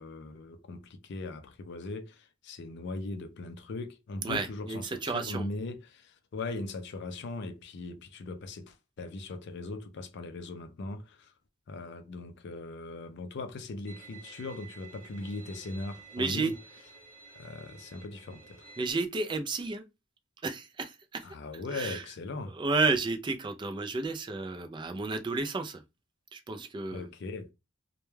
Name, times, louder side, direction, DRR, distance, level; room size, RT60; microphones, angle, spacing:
voice 1, 0.0-11.3 11.7-16.5 17.3-18.7 21.2-22.6 26.9-27.5, left 2 dB, 60° left, 0.4 m, -39 dB
voice 2, 4.2-5.5 16.1-16.5 18.8-19.8 20.4-21.2 21.7-22.0 22.5-25.8 26.3-27.1, right 3 dB, 25° right, 0.3 m, -32 dB
Bowed string instrument, 13.9-18.9, right 5 dB, 40° right, 0.8 m, -52 dB
2.2 x 2.1 x 3.1 m
head